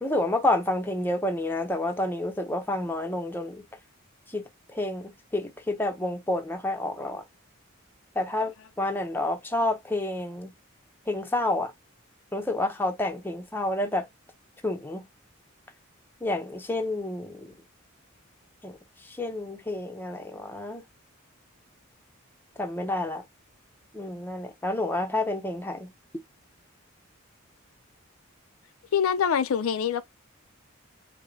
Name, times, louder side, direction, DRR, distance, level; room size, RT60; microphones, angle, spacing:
voice 1, 0.0-3.6 4.3-7.2 8.1-8.5 8.8-10.5 11.1-11.7 12.3-14.1 14.6-15.1 16.2-17.5 18.6-18.8 19.0-20.8 22.6-23.2 23.9-25.9, left 1 dB, 10° left, 0.7 m, -29 dB
voice 2, 28.9-30.0, left 7 dB, 80° left, 0.4 m, -24 dB
4.7 x 2.1 x 3.6 m
head